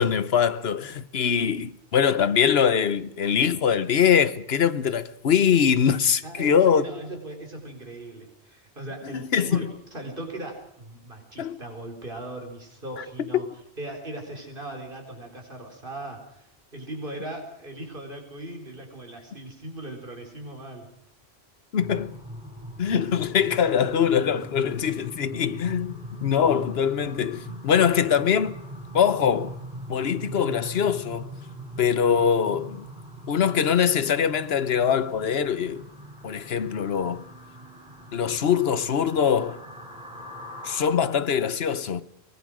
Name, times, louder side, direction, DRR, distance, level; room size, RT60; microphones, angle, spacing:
voice 1, 0.0-6.8 9.1-9.7 11.4-11.6 13.0-13.4 21.7-22.1 22.8-28.6 28.9-29.5 29.9-31.3 31.8-32.9 33.3-35.8 36.2-37.2 38.1-39.6 40.6-42.0, left 8 dB, 70° left, 1.2 m, -23 dB
voice 2, 6.2-9.6 9.9-13.5 13.8-20.9, right 1 dB, 55° right, 4.6 m, -38 dB
sound 1, 21.8-40.8, right 1 dB, 5° right, 4.3 m, -41 dB
23.0 x 18.5 x 6.3 m
omnidirectional pair, 1.1 m